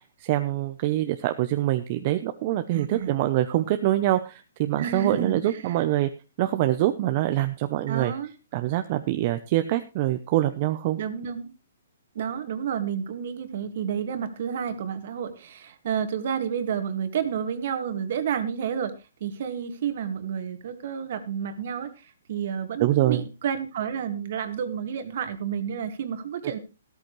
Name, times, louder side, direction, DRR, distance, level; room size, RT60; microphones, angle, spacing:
voice 1, 0.2-6.1 6.4-8.1 8.5-11.0 22.8-23.2, right 14 dB, 35° right, 9 dB, 0.8 m, -24 dB
voice 2, 2.7-3.1 4.8-5.8 7.9-8.3 11.0-11.5 12.2-19.0 19.2-26.6, right 8 dB, 50° right, 9 dB, 1.9 m, -30 dB
14.0 x 13.5 x 3.2 m, 0.29 s
hypercardioid pair, 155°, 0 cm